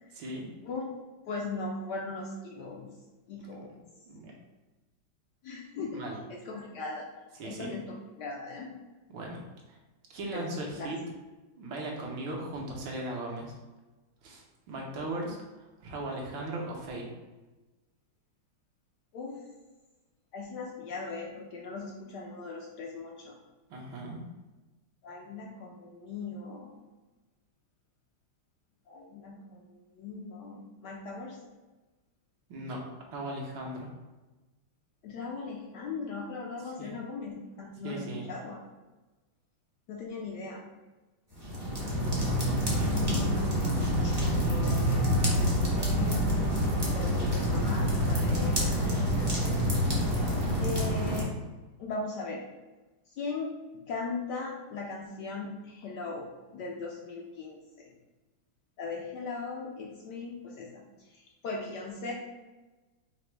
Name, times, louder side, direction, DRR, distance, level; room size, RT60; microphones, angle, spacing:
voice 1, 0.1-0.5 4.1-4.3 5.9-6.2 7.4-7.7 9.1-9.8 10.1-11.0 11.6-13.5 14.2-17.1 23.7-24.2 32.5-32.8 33.1-33.9 36.8-36.9 37.8-38.3 42.7-43.0 48.7-49.0, right 1 dB, 75° right, -1 dB, 1.6 m, -38 dB
voice 2, 1.3-2.9 3.3-3.8 5.4-6.0 6.3-7.1 7.4-8.8 10.3-10.9 19.1-19.4 20.3-23.4 25.0-26.8 28.9-31.4 35.0-38.6 39.9-40.7 43.0-43.5 44.0-46.2 46.9-49.6 50.6-51.4 51.8-52.4 53.2-53.5 53.9-57.9 58.8-62.1, left 3 dB, 70° left, -1 dB, 1.0 m, -39 dB
sound 1, 41.3-51.2, equal, 25° right, 0.5 m, -27 dB
5.0 x 2.1 x 4.4 m, 1.2 s
omnidirectional pair, 2.2 m